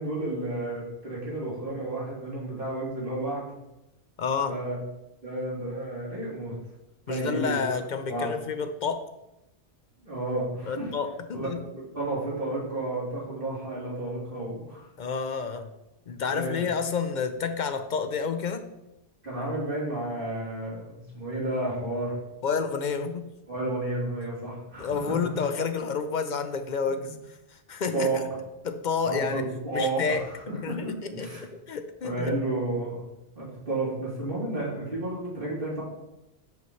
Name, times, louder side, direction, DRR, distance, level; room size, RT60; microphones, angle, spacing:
voice 1, 0.0-3.5 4.5-4.8 5.2-6.5 7.1-7.6 8.1-8.3 10.0-10.9 11.3-11.5 11.9-14.8 16.3-16.6 19.2-22.1 23.5-25.1 27.9-28.2 29.1-30.2 30.7-31.4 32.0-33.0 33.3-35.8, right 2 dB, 55° right, -6 dB, 3.3 m, -31 dB
voice 2, 4.2-4.6 7.1-9.0 10.6-11.6 15.0-15.7 16.1-18.7 22.4-23.3 24.8-27.2 27.5-28.2 28.6-29.4 29.7-32.4, left 5 dB, 50° left, 9 dB, 0.7 m, -30 dB
10.5 x 5.5 x 3.1 m, 0.92 s
omnidirectional pair, 1.1 m